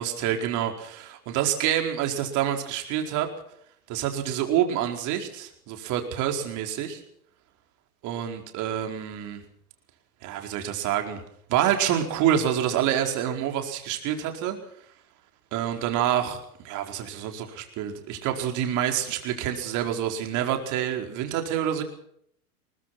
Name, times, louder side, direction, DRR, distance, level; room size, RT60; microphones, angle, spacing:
voice 1, 0.0-3.3 3.9-7.0 8.0-9.4 10.2-11.2 11.5-14.6 15.5-16.4 16.6-21.8, right 10 dB, 40° right, 4 dB, 4.7 m, -27 dB
22.0 x 20.0 x 6.2 m, 0.68 s
hypercardioid pair, 115°, 45 cm